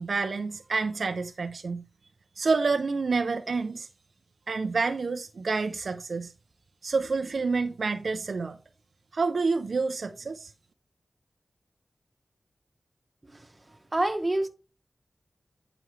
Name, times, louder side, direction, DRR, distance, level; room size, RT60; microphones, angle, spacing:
voice 1, 0.0-1.8 2.4-3.9 4.5-6.3 6.8-8.6 9.1-10.5, right 4 dB, 70° right, 0.5 m, -28 dB
voice 2, 13.9-14.5, right 1 dB, 25° right, 1.2 m, -26 dB
9.3 x 6.0 x 3.2 m
wide cardioid pair, 70°, 0 cm